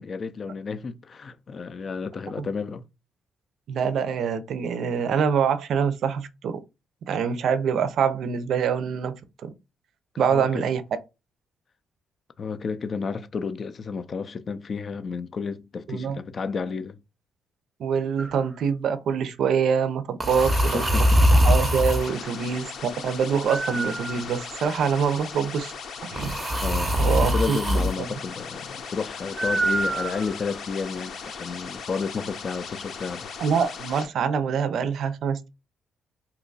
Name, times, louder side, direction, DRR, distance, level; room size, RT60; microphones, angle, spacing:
voice 1, 0.0-2.8 10.3-10.7 12.4-17.0 20.5-21.2 22.0-22.3 26.6-33.3, left 5 dB, 45° left, 0.4 m, -32 dB
voice 2, 3.7-6.6 7.1-9.1 9.4-9.5 10.2-10.8 15.9-16.2 17.8-20.9 21.3-25.7 26.0-26.4 27.0-28.2 33.4-35.5, right 6 dB, 70° right, 0.5 m, -25 dB
sound 1, 18.2-18.5 20.2-22.1 23.5-24.6 26.2-27.9 29.4-30.6, equal, 20° right, 0.6 m, -23 dB
sound 2, 20.2-34.1, left 5 dB, 70° left, 0.8 m, -38 dB
2.8 x 2.3 x 3.9 m
cardioid pair, 90°, 0 cm